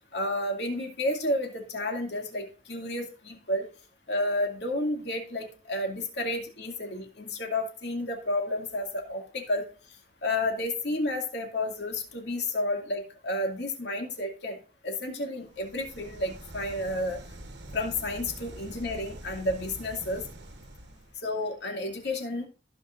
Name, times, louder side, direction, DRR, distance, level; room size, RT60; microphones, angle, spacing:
voice 1, 0.1-3.7 4.1-9.6 10.2-14.6 14.8-17.2 17.7-20.2 21.2-22.5, left 1 dB, 65° left, 2 dB, 2.4 m, -31 dB
sound 1, 15.4-21.2, right 1 dB, 70° right, 1.3 m, -45 dB
15.5 x 5.6 x 2.6 m, 0.36 s
head